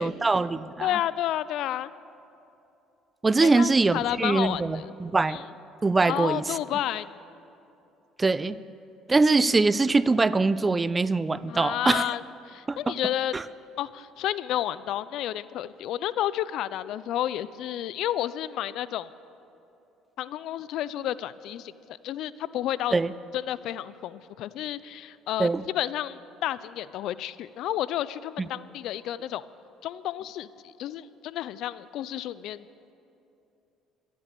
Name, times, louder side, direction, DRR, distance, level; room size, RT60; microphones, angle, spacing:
voice 1, 0.0-0.9 3.2-5.4 5.8-6.4 8.2-8.6 9.1-12.0 12.7-12.9 13.3-13.4 22.9-23.1 25.4-25.6, right 3 dB, 25° right, 17 dB, 0.4 m, -23 dB
voice 2, 0.8-1.9 3.4-4.9 5.3-5.5 6.1-7.1 11.5-12.2 12.5-13.3 13.8-19.1 20.2-21.7 22.0-22.9 23.3-29.5 29.8-30.5 30.8-32.7, left 12 dB, 70° left, 17 dB, 0.3 m, -31 dB
12.5 x 10.0 x 6.7 m, 2.8 s
supercardioid pair, 80°, 0 cm